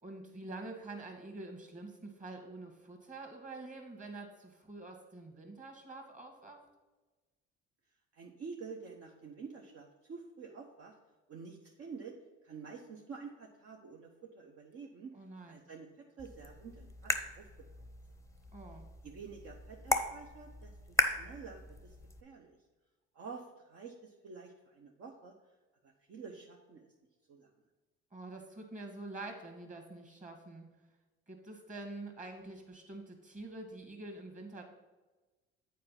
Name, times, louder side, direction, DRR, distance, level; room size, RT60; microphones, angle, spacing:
voice 1, 0.0-6.7 15.1-15.6 18.5-18.9 28.1-30.7 31.3-34.6, right 2 dB, 25° right, 3 dB, 2.0 m, -46 dB
voice 2, 8.1-11.0 11.3-12.2 12.4-15.1 15.5-17.5 19.0-22.0 22.2-22.6 23.1-25.3 25.8-26.9 27.3-27.5, right 5 dB, 55° right, 0 dB, 1.0 m, -49 dB
sound 1, 16.2-22.2, left 1 dB, 10° left, 0.7 m, -37 dB
7.6 x 4.5 x 5.8 m, 1.2 s
supercardioid pair, 70°, 29 cm